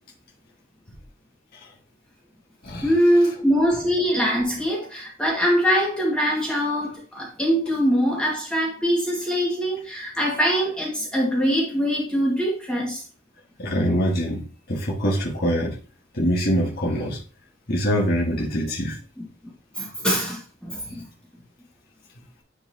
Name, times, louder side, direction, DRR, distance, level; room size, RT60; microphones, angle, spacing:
voice 1, 2.8-13.0 19.2-19.3 19.8-21.1, equal, 5° left, 2.3 m, -23 dB
voice 2, 13.6-14.4 14.7-15.8 16.1-17.2 17.7-19.0 20.7-20.8, equal, 50° left, 2.0 m, -24 dB
10.0 x 4.7 x 3.1 m
head